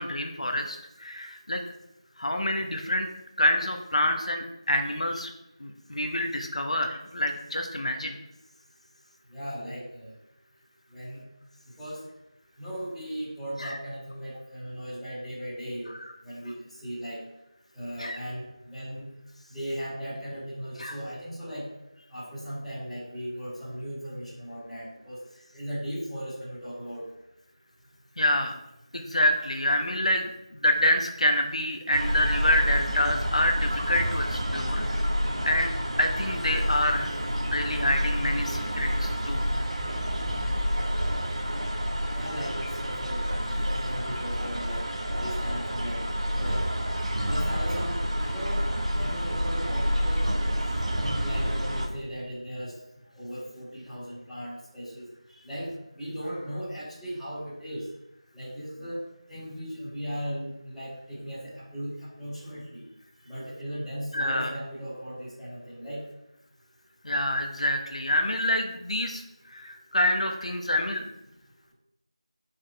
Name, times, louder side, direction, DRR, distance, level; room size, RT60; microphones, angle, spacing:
voice 1, 0.0-1.6 2.2-3.1 3.4-5.3 5.6-8.2 13.6-13.8 16.0-16.1 18.0-18.2 20.8-20.9 28.2-28.5 28.9-35.2 35.4-35.7 36.0-37.1 37.5-39.4 64.1-64.5 67.0-69.2 69.5-71.0, left 1 dB, 80° left, 4 dB, 1.1 m, -27 dB
voice 2, 9.3-10.1 10.9-11.2 11.8-12.0 12.6-15.9 16.2-17.2 17.7-19.1 19.5-21.7 22.1-25.2 25.5-27.1 42.1-43.2 43.5-44.8 45.2-46.0 46.4-46.7 47.3-48.6 48.9-50.3 50.8-52.8 53.1-57.9 58.3-59.0 59.3-62.8 63.2-66.0, equal, ahead, -16 dB, 2.1 m, -37 dB
sound 1, 31.9-51.9, equal, 75° right, 1.6 m, -28 dB
7.5 x 5.8 x 3.3 m, 0.84 s
figure-of-eight pair, 175°, 3 cm